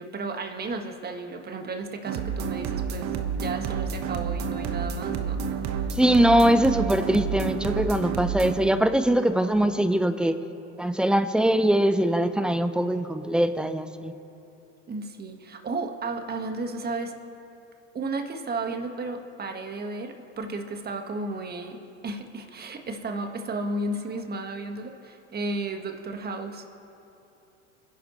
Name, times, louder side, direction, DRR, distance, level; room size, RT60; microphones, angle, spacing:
voice 1, 0.0-5.6 14.9-17.1 17.9-26.7, right 2 dB, 25° right, 5 dB, 1.6 m, -33 dB
sound 1, 2.0-8.5, right 6 dB, 50° right, 1.3 m, -29 dB
voice 2, 5.9-10.4 10.8-14.1, right 1 dB, ahead, 10 dB, 0.7 m, -22 dB
27.0 x 11.0 x 3.2 m, 2.9 s
hypercardioid pair, 85°, 37 cm